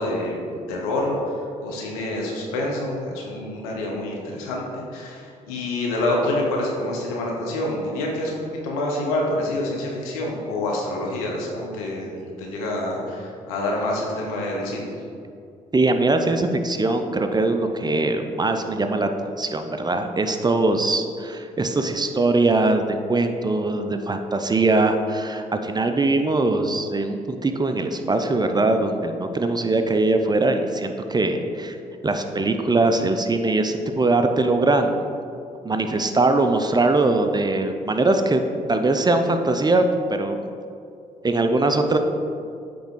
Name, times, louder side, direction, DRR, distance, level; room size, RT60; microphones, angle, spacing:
voice 1, 0.0-14.9, left 1 dB, 90° left, -1 dB, 0.9 m, -27 dB
voice 2, 15.7-19.1 19.4-31.8 32.0-35.0 35.6-38.4 38.7-40.4 41.2-42.0, right 2 dB, 25° right, 7 dB, 0.6 m, -21 dB
8.5 x 3.5 x 3.8 m, 2.5 s
hypercardioid pair, 50°, 18 cm